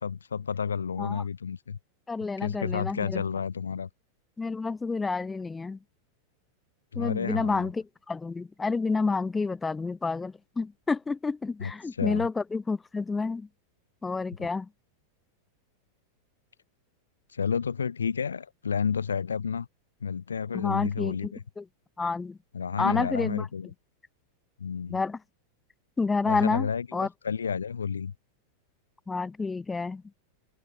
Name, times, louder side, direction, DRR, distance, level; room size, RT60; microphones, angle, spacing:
voice 1, 0.0-1.8 2.4-3.9 6.9-7.7 11.6-11.7 12.0-12.2 14.4-14.5 17.3-19.7 20.0-21.4 22.5-23.7 24.6-25.0 26.2-28.1, left 6 dB, 70° left, 3.2 m, -31 dB
voice 2, 2.1-3.2 4.4-5.8 7.0-13.5 14.0-14.7 20.5-21.7 22.0-22.4 22.8-23.5 24.9-25.2 26.0-27.1 29.1-30.0, left 4 dB, 10° left, 3.5 m, -29 dB
figure-of-eight pair, 90°, 0 cm